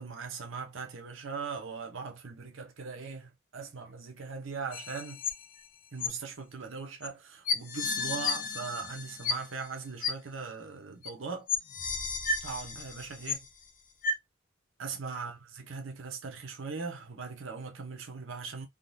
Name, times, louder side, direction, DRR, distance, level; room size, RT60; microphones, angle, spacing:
voice 1, 0.0-5.2 5.9-11.5 12.4-13.5 14.8-18.7, right 5 dB, 75° right, 0.8 m, -40 dB
sound 1, 4.7-5.6 6.0-6.1 7.0-7.1 7.5-9.7 10.0-10.1 11.0-11.1 11.5-13.6 14.0-14.1, left 4 dB, 45° left, 0.7 m, -33 dB
3.7 x 2.3 x 2.5 m
head